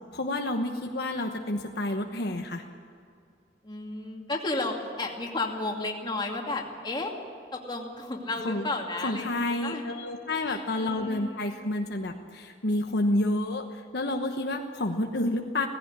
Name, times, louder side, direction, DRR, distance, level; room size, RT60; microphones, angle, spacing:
voice 1, 0.0-2.6 8.4-8.7 9.0-15.7, left 1 dB, 65° left, 4 dB, 1.2 m, -29 dB
voice 2, 3.6-7.1 7.5-9.9 10.5-11.4, left 2 dB, 25° left, 1 dB, 2.4 m, -33 dB
18.0 x 15.5 x 9.7 m, 2.3 s
head